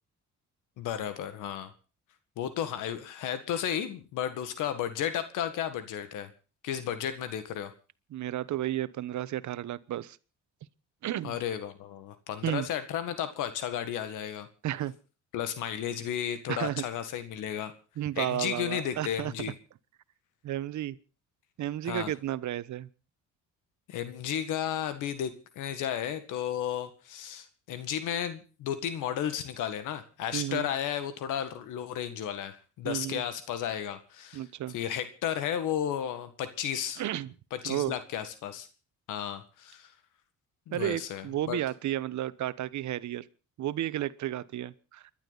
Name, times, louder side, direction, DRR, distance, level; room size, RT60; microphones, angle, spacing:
voice 1, 0.8-1.7 2.4-6.3 6.6-7.7 11.2-14.5 15.3-17.7 18.2-19.5 21.9-22.1 23.9-37.0 37.5-38.7 39.1-39.9 40.7-41.6, left 10 dB, 90° left, 1.8 m, -33 dB
voice 2, 8.1-10.2 11.0-11.3 12.4-12.7 14.6-15.0 16.5-16.8 18.0-19.5 20.4-21.0 21.6-22.9 30.3-30.7 32.8-33.2 34.3-34.7 37.0-37.3 37.6-37.9 40.7-43.3 43.6-45.0, right 13 dB, 70° right, 1.1 m, -32 dB
30.0 x 11.5 x 4.1 m
cardioid pair, 90°, 30 cm